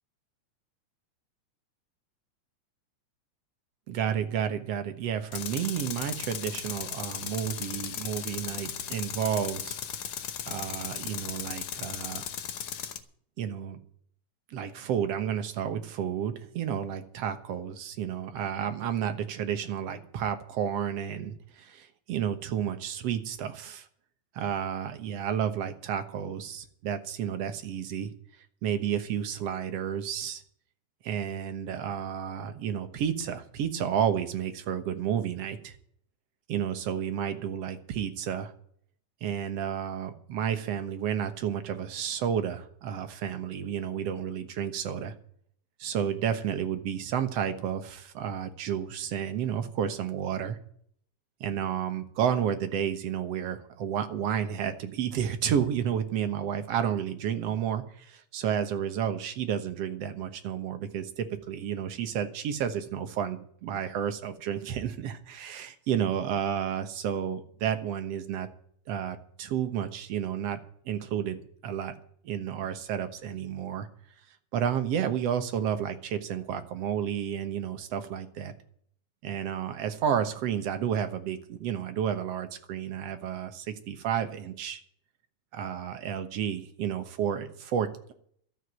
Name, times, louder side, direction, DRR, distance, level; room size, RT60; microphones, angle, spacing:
voice 1, 3.9-9.8 10.5-12.3 13.4-13.8 14.5-23.9 24.3-28.1 28.6-30.4 31.0-35.8 36.5-38.5 39.2-45.1 45.8-50.6 51.4-68.5 68.9-71.9 72.2-73.9 74.5-78.5 79.2-84.8 85.5-88.1, right 9 dB, 60° right, 9 dB, 2.1 m, -31 dB
Tools, 5.3-13.0, left 9 dB, 60° left, 1.6 m, -37 dB
12.5 x 8.0 x 8.9 m, 0.62 s
omnidirectional pair, 3.5 m